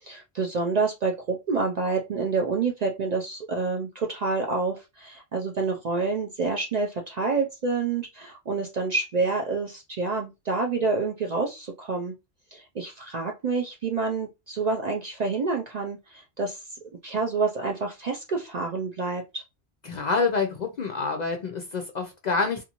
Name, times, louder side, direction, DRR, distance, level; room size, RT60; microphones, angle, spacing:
voice 1, 0.0-12.1 12.5-16.6 17.0-19.4, right 4 dB, 55° right, 0.5 m, -28 dB
voice 2, 19.8-22.6, left 4 dB, 55° left, 0.5 m, -27 dB
2.6 x 2.4 x 2.8 m
omnidirectional pair, 1.1 m